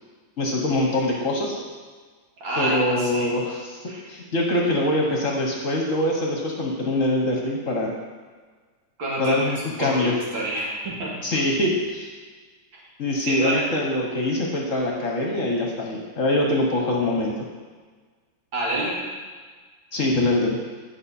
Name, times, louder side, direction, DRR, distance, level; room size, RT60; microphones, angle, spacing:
voice 1, 0.4-1.5 2.6-7.9 9.2-10.1 11.2-12.1 13.0-17.3 19.9-20.6, left 1 dB, 50° left, -1 dB, 1.2 m, -24 dB
voice 2, 2.4-3.3 3.9-4.0 9.0-9.5 9.8-11.2 13.2-13.7 18.5-19.0, right 1 dB, 85° right, -5 dB, 2.6 m, -27 dB
10.0 x 5.7 x 4.2 m, 1.5 s
omnidirectional pair, 2.1 m